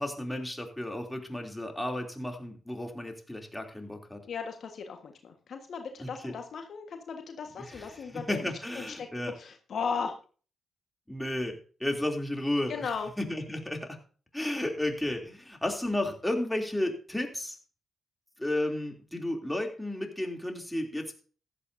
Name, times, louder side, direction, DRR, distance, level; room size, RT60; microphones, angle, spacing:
voice 1, 0.0-4.2 6.0-6.3 7.7-9.3 11.1-12.9 13.2-14.0 14.3-17.6 18.4-21.2, left 1 dB, 10° left, 3 dB, 3.1 m, -33 dB
voice 2, 4.2-8.5 8.8-9.1 9.3-10.1 12.7-13.1, left 5 dB, 60° left, 5 dB, 1.5 m, -36 dB
15.0 x 11.5 x 2.7 m, 0.39 s
hypercardioid pair, 40°, 0 cm